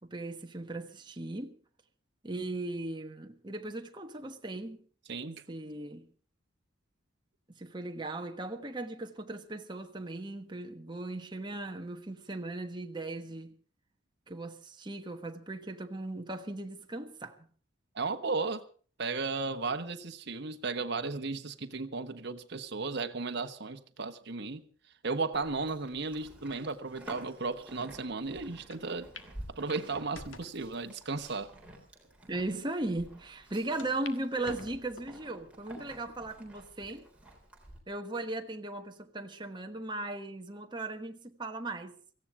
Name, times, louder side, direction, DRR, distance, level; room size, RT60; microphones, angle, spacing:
voice 1, 0.0-1.6 2.2-4.9 5.5-6.1 7.6-13.5 14.3-17.4 32.3-37.1 37.9-42.0, right 2 dB, 25° right, 1.2 m, -38 dB
voice 2, 5.1-5.4 17.9-18.6 19.0-24.6 25.0-29.1 29.5-31.5, right 3 dB, 60° right, 1.2 m, -35 dB
Livestock farm animals working animals, 25.3-37.8, right 1 dB, 5° right, 3.6 m, -51 dB
sound 1, 28.7-28.8 29.2-29.3 29.7-30.6 31.2-31.3 32.1-32.2 32.4-32.5 33.8-34.2 34.4-35.2 35.8-36.2 36.7-36.8 38.0-38.4, left 4 dB, 75° left, 1.7 m, -48 dB
17.5 x 15.0 x 4.8 m
head